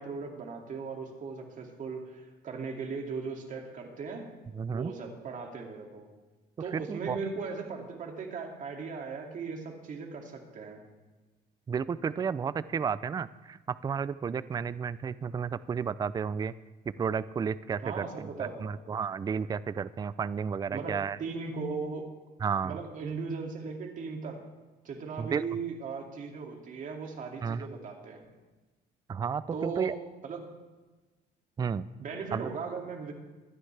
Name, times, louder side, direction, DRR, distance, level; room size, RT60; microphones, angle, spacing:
voice 1, 0.0-4.3 4.7-6.1 6.6-10.8 17.8-18.7 20.7-22.1 22.6-24.4 24.8-28.2 29.5-29.9 30.2-30.5 32.0-33.1, right 5 dB, 50° right, 2 dB, 2.4 m, -38 dB
voice 2, 4.5-4.9 6.7-7.2 11.7-16.5 17.0-18.3 18.6-21.2 22.4-22.8 25.2-25.4 27.4-27.7 29.1-29.9 31.6-31.8 32.3-32.5, right 6 dB, 25° right, 17 dB, 0.4 m, -32 dB
24.0 x 9.7 x 3.3 m, 1.2 s
cardioid pair, 110°, 17 cm